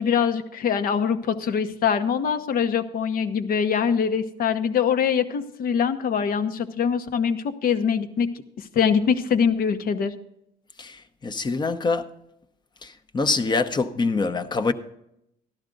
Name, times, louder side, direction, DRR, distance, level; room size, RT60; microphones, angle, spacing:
voice 1, 0.0-8.3 8.6-10.1, left 7 dB, 60° left, 1.0 m, -23 dB
voice 2, 10.8-12.1 12.8-14.7, left 3 dB, 25° left, 0.8 m, -25 dB
13.5 x 11.5 x 3.9 m
cardioid pair, 110°, 17 cm